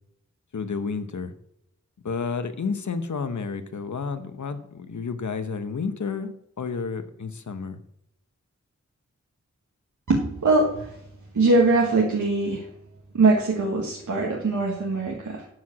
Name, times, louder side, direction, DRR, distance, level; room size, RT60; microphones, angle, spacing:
voice 1, 0.5-1.3 2.0-6.3 6.6-7.8, left 5 dB, 75° left, 9 dB, 1.0 m, -30 dB
voice 2, 10.1-11.0 11.3-12.7 13.1-15.5, right 3 dB, 90° right, -2 dB, 1.6 m, -22 dB
12.0 x 4.9 x 7.3 m, 0.76 s
wide cardioid pair, 55°, 29 cm